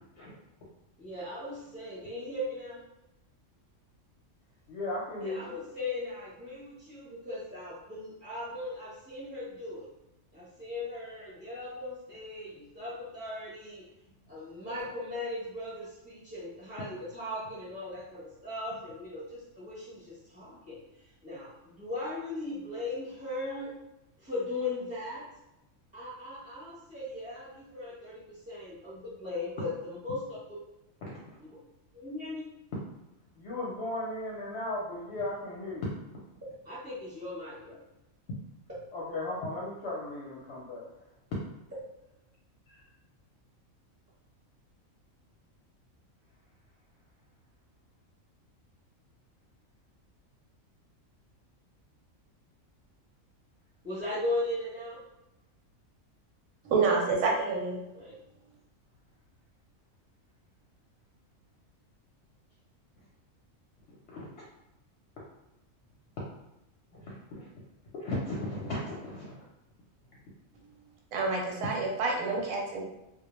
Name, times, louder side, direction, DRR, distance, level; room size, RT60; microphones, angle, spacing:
voice 1, 1.0-2.8 5.2-9.9 10.3-13.8 14.3-20.8 21.2-23.7 24.2-25.2 25.9-30.4 31.4-31.6 31.9-32.5 36.6-37.8 53.8-55.0 57.9-58.2, left 2 dB, 15° right, -12 dB, 0.7 m, -38 dB
voice 2, 4.7-5.5 28.9-29.7 31.0-31.4 33.4-35.9 38.9-40.9 64.1-64.3 66.9-67.4 67.9-69.4, left 2 dB, 65° left, -5 dB, 0.7 m, -36 dB
voice 3, 56.6-57.8 71.1-72.8, right 4 dB, 90° right, 0 dB, 1.0 m, -28 dB
2.2 x 2.1 x 2.9 m, 0.90 s
omnidirectional pair, 1.4 m